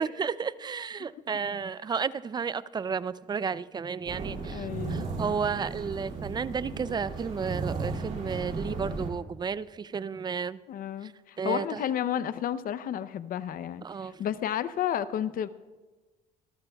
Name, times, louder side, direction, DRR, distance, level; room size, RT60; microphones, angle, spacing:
voice 1, 0.0-10.6 11.0-11.8 13.8-14.2, right 6 dB, 25° right, 17 dB, 0.4 m, -32 dB
sound 1, 4.1-9.1, right 4 dB, 45° right, 2.7 m, -35 dB
voice 2, 4.5-5.1 10.7-15.5, left 10 dB, 55° left, 14 dB, 0.7 m, -32 dB
24.5 x 14.0 x 2.3 m, 1.3 s
cardioid pair, 110°, 17 cm